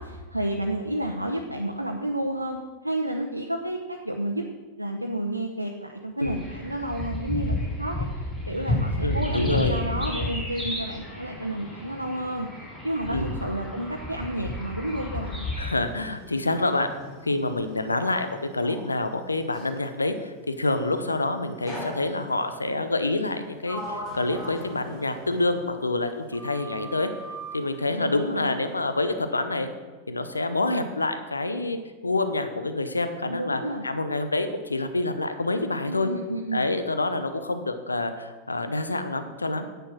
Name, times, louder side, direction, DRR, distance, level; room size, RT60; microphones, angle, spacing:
voice 1, 0.0-4.4 4.8-8.1 8.5-12.5 12.8-15.5 27.9-28.6 33.3-33.8 35.9-36.7, right 1 dB, 85° right, 1 dB, 0.7 m, -31 dB
sound 1, 6.2-15.7, left 1 dB, 15° left, 3.8 m, -31 dB
voice 2, 9.0-9.8 13.1-13.4 15.6-16.9 17.2-27.1 27.5-29.7 30.1-31.8 32.0-36.1 36.5-39.6, left 2 dB, 80° left, 9 dB, 0.8 m, -27 dB
Sliding door, 15.8-19.8 21.7-22.5 23.2-26.1 26.3-27.6, equal, 35° left, 3.7 m, -40 dB
10.0 x 8.1 x 6.2 m, 1.3 s
figure-of-eight pair, 90°, 0 cm